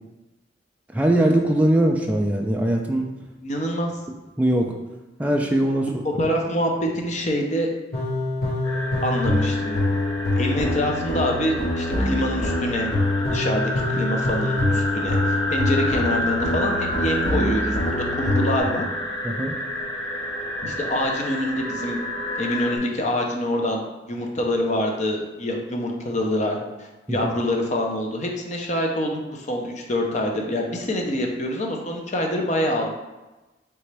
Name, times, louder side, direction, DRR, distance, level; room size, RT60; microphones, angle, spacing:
voice 1, 0.9-3.1 4.4-4.8 5.2-5.9 19.2-19.6 27.1-27.3, right 1 dB, 10° right, 1 dB, 0.3 m, -21 dB
voice 2, 3.4-3.9 5.8-5.9 6.2-7.7 9.0-9.8 10.4-12.9 13.3-18.9 20.6-22.0 22.4-23.8 24.1-32.9, equal, 40° left, 1 dB, 0.6 m, -26 dB
sound 1, 7.9-18.6, left 2 dB, 55° left, 1.3 m, -25 dB
sound 2, 8.6-22.8, left 1 dB, 20° left, 1.1 m, -30 dB
4.0 x 3.4 x 3.3 m, 1.1 s
head